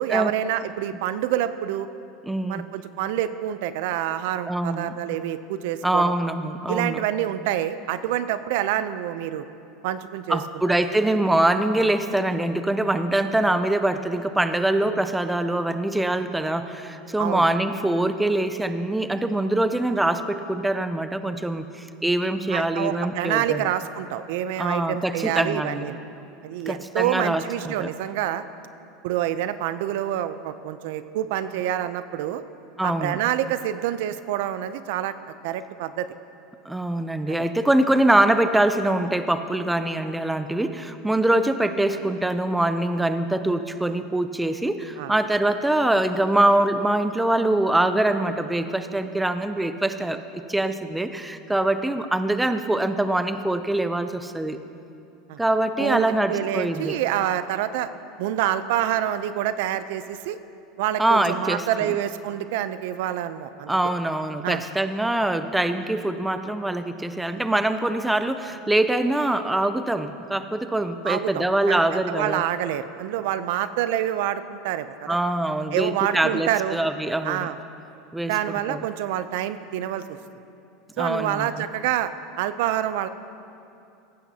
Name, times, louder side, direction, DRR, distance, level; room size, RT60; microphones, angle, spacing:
voice 1, 0.0-1.9 2.5-6.1 6.7-9.4 9.8-10.4 17.2-17.5 22.5-26.0 26.4-28.4 29.0-32.4 32.8-35.1 35.4-36.1 37.3-37.5 45.0-45.1 55.3-55.4 55.8-57.9 58.2-60.4 60.8-63.7 64.4-64.6 71.0-75.2 75.7-76.8 77.2-77.6 78.2-80.2 81.0-83.1, right 11 dB, 70° right, 13 dB, 0.5 m, -27 dB
voice 2, 2.2-2.7 4.5-5.0 5.8-7.0 10.3-23.6 24.6-25.9 26.7-27.9 32.8-33.2 36.7-54.6 55.4-57.0 61.0-61.7 63.7-72.4 75.1-77.5 78.1-78.3 78.7-78.8 81.0-81.5, right 1 dB, 5° right, 9 dB, 0.4 m, -23 dB
16.0 x 14.5 x 2.8 m, 2.7 s
supercardioid pair, 145°, 0 cm